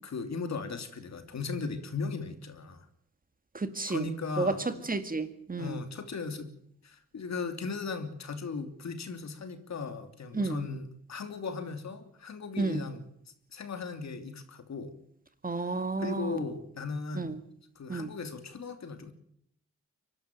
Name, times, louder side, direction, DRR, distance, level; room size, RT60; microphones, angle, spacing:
voice 1, 0.0-2.8 3.9-4.9 5.6-6.5 6.8-13.0 13.5-14.9 15.7-17.4 17.8-19.1, left 4 dB, 60° left, 8 dB, 2.9 m, -37 dB
voice 2, 3.5-4.0 4.4-4.5 4.9-5.8 10.3-10.6 12.6-12.8 15.4-16.5 17.1-17.4 17.9-18.2, right 3 dB, 30° right, 10 dB, 2.0 m, -31 dB
24.0 x 12.0 x 9.3 m, 0.70 s
cardioid pair, 60°, 30 cm